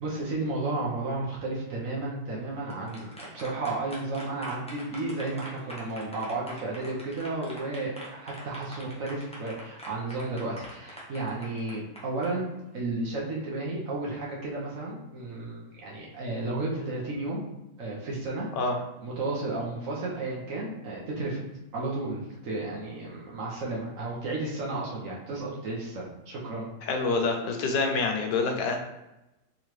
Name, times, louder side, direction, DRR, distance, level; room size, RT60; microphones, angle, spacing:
voice 1, 0.0-12.5 12.7-17.4 17.8-18.5 19.0-21.4 21.7-26.7, right 2 dB, 60° right, -4 dB, 1.0 m, -33 dB
sound 1, 2.5-12.3, equal, 10° left, 0.4 m, -44 dB
voice 2, 26.8-28.8, left 4 dB, 80° left, 3 dB, 1.3 m, -26 dB
3.7 x 3.1 x 3.0 m, 0.94 s
omnidirectional pair, 1.8 m